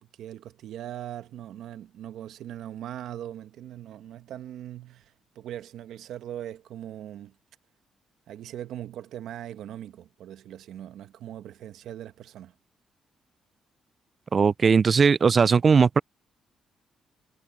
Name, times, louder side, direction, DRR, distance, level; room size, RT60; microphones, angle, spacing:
voice 1, 0.0-7.3 8.3-12.5, right 11 dB, 80° right, 1.2 m, -40 dB
voice 2, 14.3-16.0, right 5 dB, 40° right, 0.3 m, -19 dB
cardioid pair, 90°, 0 cm